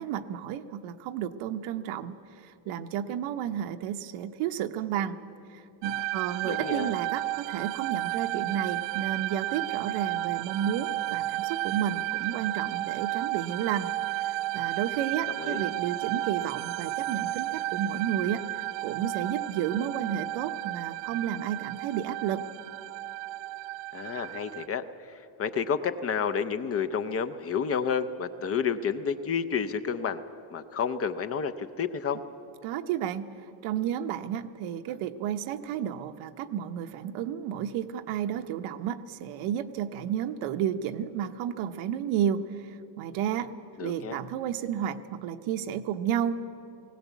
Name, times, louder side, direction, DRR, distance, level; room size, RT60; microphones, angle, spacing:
voice 1, 0.0-2.2 2.4-5.2 5.5-13.9 14.2-22.4 32.6-33.3 33.6-43.5 43.8-46.3, right 9 dB, 85° right, 8 dB, 1.0 m, -32 dB
sound 1, 5.8-24.7, right 17 dB, 65° right, 0.5 m, -33 dB
voice 2, 6.4-6.9 15.4-15.6 23.9-30.2 30.5-32.2 43.8-44.2, left 6 dB, 30° left, 10 dB, 0.5 m, -30 dB
20.0 x 17.5 x 8.3 m, 2.7 s
cardioid pair, 165°, 48 cm